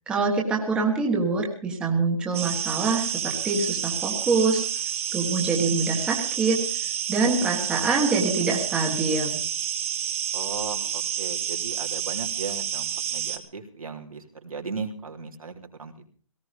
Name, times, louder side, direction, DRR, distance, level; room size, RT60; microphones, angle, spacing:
voice 1, 0.1-4.6 5.1-6.6 7.1-9.4, right 4 dB, 5° right, -1 dB, 1.5 m, -25 dB
sound 1, 2.3-13.4, right 9 dB, 25° right, 1.2 m, -29 dB
voice 2, 10.3-15.5 15.8-16.1, right 4 dB, 85° right, 3 dB, 3.6 m, -36 dB
18.0 x 15.0 x 5.2 m, 0.43 s
hypercardioid pair, 170°, 18 cm